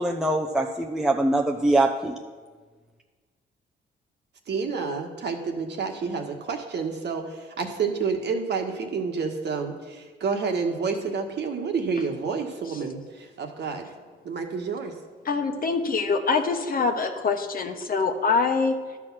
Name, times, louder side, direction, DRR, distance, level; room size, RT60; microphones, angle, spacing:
voice 1, 0.0-2.2, right 2 dB, 5° right, 1 dB, 0.6 m, -23 dB
voice 2, 4.5-13.9 14.2-14.9, right 5 dB, 60° right, 4 dB, 1.4 m, -29 dB
voice 3, 15.3-18.7, left 4 dB, 45° left, 6 dB, 1.1 m, -24 dB
11.5 x 6.1 x 6.1 m, 1.5 s
cardioid pair, 90°, 20 cm